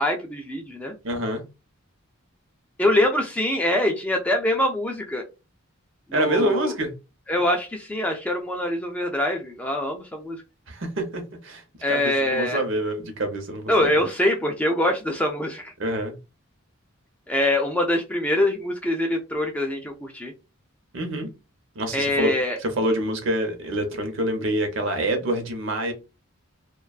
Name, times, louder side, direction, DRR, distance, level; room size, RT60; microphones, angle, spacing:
voice 1, 0.0-0.9 2.8-5.2 6.1-6.7 7.3-10.4 11.8-12.6 13.7-15.7 17.3-20.3 21.9-22.6, left 1 dB, 5° left, 0.3 m, -24 dB
voice 2, 1.0-1.4 6.1-6.9 10.7-11.6 11.9-13.7 15.8-16.2 20.9-21.3 21.7-22.3 22.6-25.9, right 1 dB, 55° right, 0.7 m, -26 dB
2.4 x 2.2 x 2.3 m
head